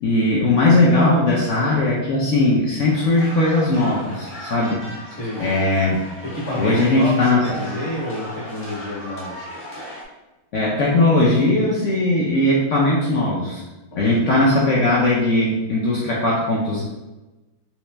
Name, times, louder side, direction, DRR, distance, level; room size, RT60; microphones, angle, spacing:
voice 1, 0.0-4.8 5.4-6.0 6.6-7.4 10.5-13.6 14.0-16.8, left 2 dB, 80° left, -5 dB, 0.6 m, -18 dB
voice 2, 1.5-1.8 5.1-5.5 6.2-9.5 13.9-14.5, left 1 dB, 45° left, -5 dB, 1.2 m, -30 dB
sound 1, 2.9-10.0, equal, 10° left, 0.5 m, -36 dB
3.2 x 3.0 x 3.3 m, 1.1 s
omnidirectional pair, 2.1 m